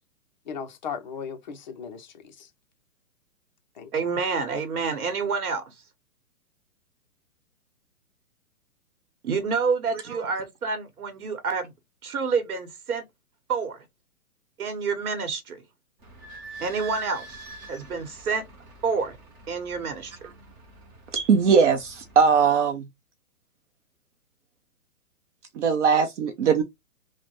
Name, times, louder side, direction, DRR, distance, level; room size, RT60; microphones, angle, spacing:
voice 1, 0.5-2.5 3.8-3.9, left 7 dB, 35° left, 0.4 m, -37 dB
voice 2, 3.9-5.6 9.2-11.7 12.0-13.0 13.5-13.8 14.6-15.6 16.6-17.4 17.7-18.4 18.8-19.2 19.5-20.1, right 5 dB, 85° right, 1.1 m, -28 dB
Idling / Squeak, 16.0-22.4, right 3 dB, 15° right, 0.6 m, -45 dB
voice 3, 21.1-22.9 25.6-26.6, right 6 dB, 55° right, 0.6 m, -20 dB
3.2 x 2.1 x 2.9 m
hypercardioid pair, 145°, 44 cm